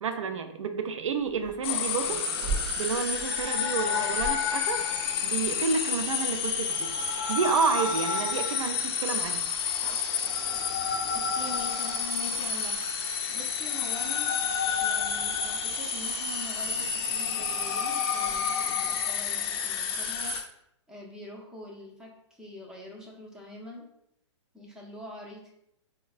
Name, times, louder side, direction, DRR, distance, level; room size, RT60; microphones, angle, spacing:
voice 1, 0.0-2.2 2.8-4.8 5.2-9.4, right 5 dB, 90° right, 7 dB, 0.4 m, -30 dB
Growling, 1.2-5.8 6.5-6.6 6.9-8.0 9.1-11.9 12.2-12.7 13.6-15.4 16.6-19.1, right 3 dB, 40° right, 0.6 m, -43 dB
sound 1, 1.6-20.4, left 6 dB, 50° left, 0.4 m, -29 dB
voice 2, 11.1-12.7 13.3-14.4 14.8-20.3 20.9-23.9 24.5-25.5, left 1 dB, 5° right, -3 dB, 0.5 m, -44 dB
4.3 x 2.1 x 2.3 m, 0.77 s
hypercardioid pair, 145°, 16 cm